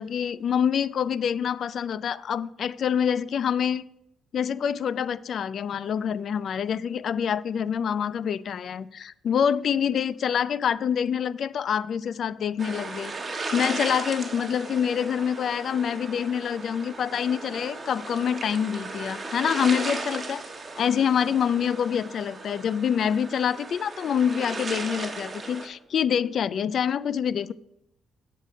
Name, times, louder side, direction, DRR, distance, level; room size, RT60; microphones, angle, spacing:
voice 1, 0.0-3.8 4.3-20.4 20.8-27.5, left 8 dB, 60° left, 0.3 m, -26 dB
sound 1, 12.6-25.7, right 3 dB, 30° right, 1.2 m, -36 dB
6.5 x 5.0 x 6.7 m
cardioid pair, 90°, 0 cm